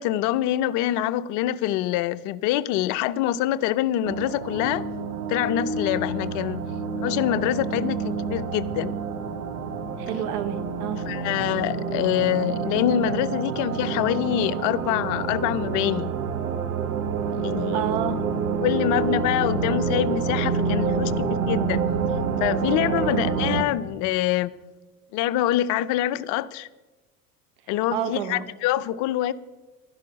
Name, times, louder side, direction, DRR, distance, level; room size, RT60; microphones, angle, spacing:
voice 1, 0.0-4.8 5.3-6.6 7.0-9.0 11.1-16.1 17.3-17.8 18.6-21.8 22.4-24.5 25.1-26.7 27.7-29.3, left 13 dB, 40° left, 0.6 m, -25 dB
sound 1, 4.0-23.6, right 5 dB, 75° right, 1.2 m, -27 dB
voice 2, 10.0-11.0 17.7-18.2 23.0-23.2 27.6-28.5, right 9 dB, 50° right, 1.2 m, -30 dB
12.5 x 10.5 x 5.9 m
figure-of-eight pair, 70°, 46 cm